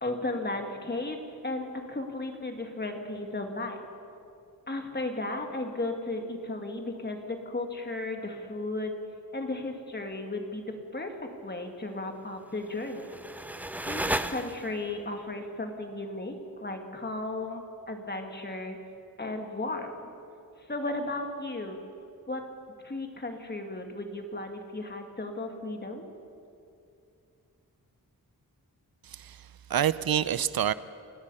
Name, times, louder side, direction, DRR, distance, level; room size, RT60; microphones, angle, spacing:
voice 1, 0.0-1.2 1.4-3.8 4.7-9.0 9.3-10.7 10.9-11.1 11.4-13.2 13.9-18.8 19.2-19.9 20.7-21.8 22.3-22.4 22.8-26.1, left 2 dB, 30° left, 4 dB, 2.2 m, -35 dB
sound 1, 12.6-15.0, right 1 dB, 5° right, 0.6 m, -34 dB
voice 2, 29.0-30.7, right 10 dB, 75° right, 16 dB, 0.6 m, -28 dB
29.5 x 17.0 x 5.6 m, 2.6 s
wide cardioid pair, 130°, 36 cm